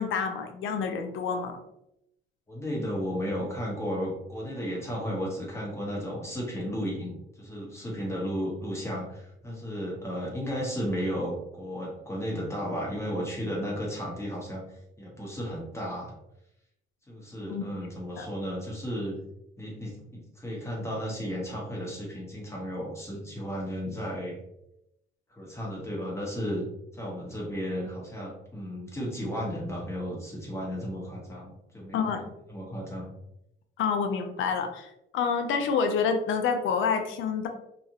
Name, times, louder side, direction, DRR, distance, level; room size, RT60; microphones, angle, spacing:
voice 1, 0.0-1.6 17.5-17.6 18.2-18.3 31.9-32.3 33.8-37.5, left 6 dB, 80° left, 5 dB, 0.5 m, -28 dB
voice 2, 2.5-16.1 17.1-19.1 19.6-24.4 25.3-26.6 26.9-32.1 32.5-33.1, equal, 15° left, -4 dB, 1.1 m, -34 dB
2.9 x 2.4 x 2.5 m, 0.81 s
cardioid pair, 90°, 20 cm